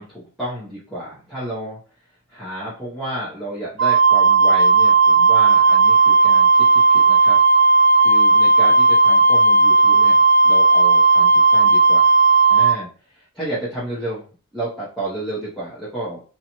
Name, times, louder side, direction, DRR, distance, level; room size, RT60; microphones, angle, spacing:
voice 1, 0.0-1.8 2.3-7.4 8.0-10.2 10.4-12.1 12.5-14.3 14.5-16.2, right 1 dB, ahead, -10 dB, 0.8 m, -31 dB
Wind instrument woodwind instrument, 3.8-12.8, right 4 dB, 55° right, 0.6 m, -14 dB
2.6 x 2.2 x 2.9 m, 0.37 s
head